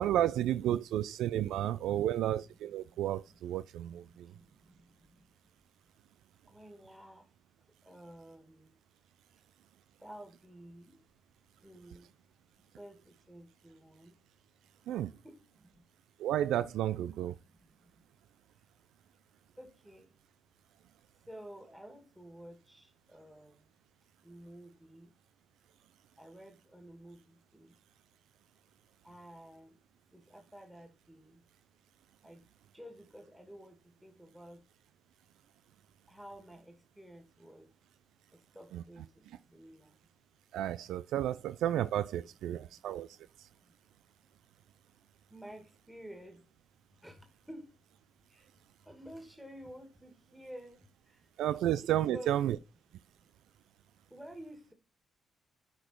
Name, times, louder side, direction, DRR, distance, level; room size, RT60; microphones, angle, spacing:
voice 1, 0.0-4.3 14.9-15.1 16.2-17.4 38.7-38.8 40.5-43.5 51.4-52.6, right 12 dB, 85° right, 0.3 m, -32 dB
voice 2, 2.6-3.4 3.9-5.3 6.5-7.3 7.8-8.8 10.0-11.0 11.6-12.1 12.6-14.2 14.9-15.0 15.2-15.8 17.4-18.0 19.6-20.1 21.3-23.7 24.2-25.1 26.2-27.7 29.0-29.8 30.1-31.4 32.2-32.5 32.7-34.6 36.1-37.7 38.3-40.0 42.5-42.9 43.6-43.7 45.3-46.4 47.0-47.8 48.3-48.5 48.8-51.3 52.0-52.3 53.0-53.3 54.1-54.7, equal, 5° right, 2.3 m, -52 dB
10.0 x 4.3 x 4.5 m
cardioid pair, 85°, 0 cm